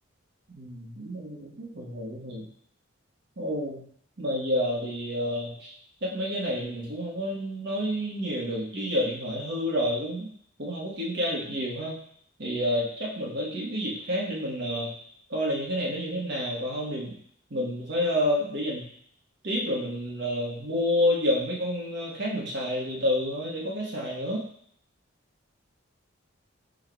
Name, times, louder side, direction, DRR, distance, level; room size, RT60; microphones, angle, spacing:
voice 1, 0.5-2.4 3.4-3.8 4.2-5.7 6.0-10.3 10.6-12.0 12.4-14.9 15.3-17.1 17.5-18.9 19.4-24.4, equal, 55° right, -4 dB, 1.2 m, -29 dB
4.6 x 2.3 x 4.4 m, 0.64 s
head